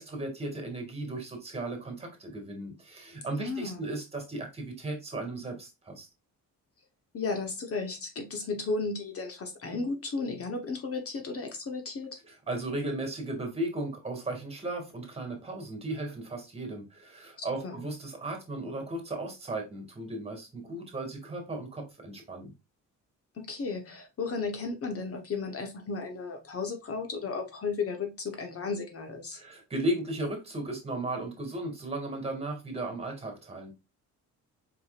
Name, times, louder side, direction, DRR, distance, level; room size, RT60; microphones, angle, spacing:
voice 1, 0.0-6.1 12.2-22.5 29.3-33.7, right 2 dB, 20° right, 2.0 m, -36 dB
voice 2, 3.4-3.8 7.1-12.2 17.4-17.8 23.3-29.4, left 4 dB, 45° left, 1.0 m, -34 dB
4.8 x 4.5 x 2.4 m
cardioid pair, 110°, 33 cm